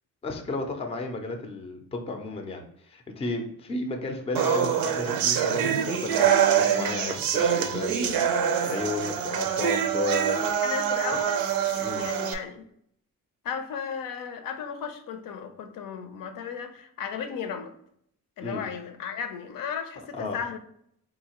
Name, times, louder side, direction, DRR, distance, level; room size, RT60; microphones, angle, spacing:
voice 1, 0.2-10.5 11.8-12.0 18.4-18.7 20.1-20.4, left 2 dB, 20° left, 4 dB, 0.4 m, -33 dB
sound 1, 4.4-12.3, right 8 dB, 90° right, 0.5 m, -25 dB
voice 2, 10.6-11.4 11.7-12.7 13.4-17.8 18.4-20.6, left 7 dB, 75° left, 7 dB, 0.6 m, -35 dB
3.8 x 2.7 x 2.9 m, 0.70 s
cardioid pair, 150°, 34 cm